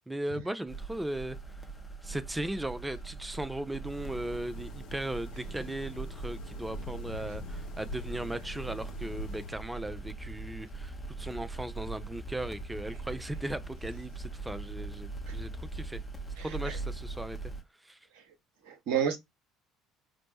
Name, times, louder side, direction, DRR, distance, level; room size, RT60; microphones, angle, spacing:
voice 1, 0.1-1.4 2.0-16.0 16.4-17.4 17.8-18.0, right 1 dB, 10° right, 0.4 m, -37 dB
sound 1, 0.7-17.6, right 3 dB, 15° left, 0.8 m, -41 dB
sound 2, 3.8-9.5, left 1 dB, 60° left, 0.6 m, -43 dB
voice 2, 16.4-16.8 18.1-18.2 18.7-19.2, right 8 dB, 60° right, 0.7 m, -31 dB
4.0 x 2.1 x 3.1 m
figure-of-eight pair, 55°, 0 cm